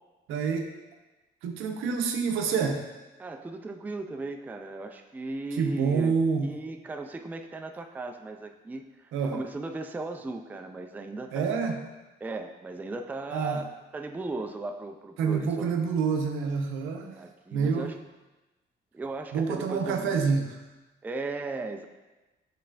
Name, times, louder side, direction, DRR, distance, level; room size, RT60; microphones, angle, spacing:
voice 1, 0.3-0.7 1.4-2.8 5.6-6.5 9.1-9.4 11.3-11.8 13.3-13.6 15.2-17.1 17.5-17.9 19.3-20.6, right 5 dB, 85° right, 4 dB, 0.6 m, -27 dB
voice 2, 3.2-6.1 6.4-11.6 12.2-13.6 13.9-15.7 17.2-17.9 18.9-20.2 21.0-21.9, right 2 dB, 10° right, 5 dB, 0.3 m, -37 dB
6.6 x 3.2 x 2.4 m, 1.1 s
cardioid pair, 90°, 20 cm